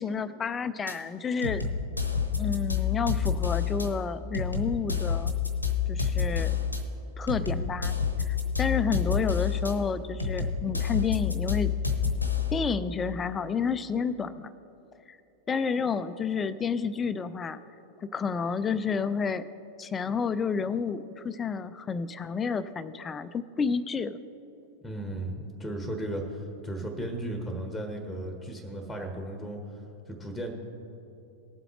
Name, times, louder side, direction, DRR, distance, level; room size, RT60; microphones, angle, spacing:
voice 1, 0.0-1.7 2.4-5.3 5.9-6.6 7.2-8.0 8.3-11.7 12.5-14.5 15.1-15.2 15.5-17.6 18.0-19.5 19.8-24.2, left 5 dB, 20° left, 14 dB, 0.4 m, -30 dB
sound 1, 0.9-1.0 1.4-3.9 4.3-6.8 7.3-9.7 10.2-12.6, left 6 dB, 90° left, 0.9 m, -28 dB
voice 2, 24.8-29.6 30.1-30.5, right 1 dB, ahead, 4 dB, 1.3 m, -35 dB
19.0 x 7.7 x 3.2 m, 3.0 s
figure-of-eight pair, 90°, 0 cm